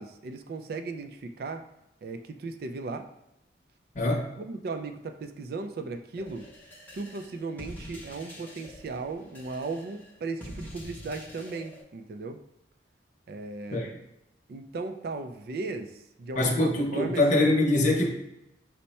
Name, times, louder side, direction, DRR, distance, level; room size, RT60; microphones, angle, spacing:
voice 1, 0.0-1.6 2.0-3.1 4.4-6.5 6.9-12.4 13.3-13.9 14.5-17.4, right 3 dB, 55° right, 7 dB, 0.3 m, -36 dB
voice 2, 3.9-4.3 13.7-13.9 16.4-18.1, left 2 dB, 40° left, -1 dB, 0.8 m, -23 dB
sound 1, 6.2-11.8, left 1 dB, 10° left, 0.6 m, -46 dB
5.4 x 2.1 x 4.1 m, 0.86 s
head